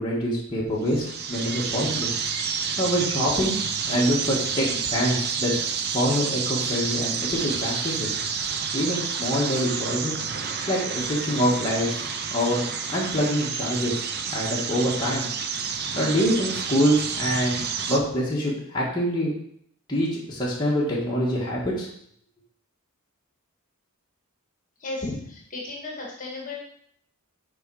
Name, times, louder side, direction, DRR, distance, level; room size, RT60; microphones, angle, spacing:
voice 1, 0.0-2.1 2.5-5.6 5.9-8.2 8.7-14.0 14.3-15.3 15.9-17.6 17.9-19.3 19.9-21.9, equal, 20° left, -7 dB, 1.7 m, -25 dB
sound 1, 0.8-18.0, right 6 dB, 45° right, 0.6 m, -29 dB
voice 2, 24.8-26.6, left 2 dB, 35° left, -2 dB, 1.7 m, -34 dB
6.8 x 4.7 x 4.9 m, 0.68 s
head